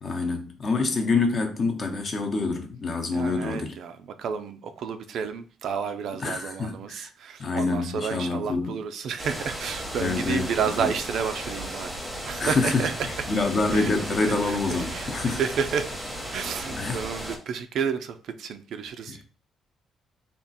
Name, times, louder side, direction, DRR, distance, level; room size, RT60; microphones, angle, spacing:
voice 1, 0.0-3.7 6.2-7.1 7.4-8.8 10.0-10.5 10.8-10.9 12.4-15.4 16.7-17.0 19.1-19.2, left 3 dB, 35° left, 0.7 m, -26 dB
voice 2, 3.1-11.9 12.2-12.9 13.7-13.9 14.4-15.9 16.3-19.2, right 7 dB, 60° right, 0.4 m, -31 dB
sound 1, 9.2-17.4, equal, 5° right, 0.8 m, -35 dB
3.5 x 2.4 x 4.0 m
cardioid pair, 155°, 0 cm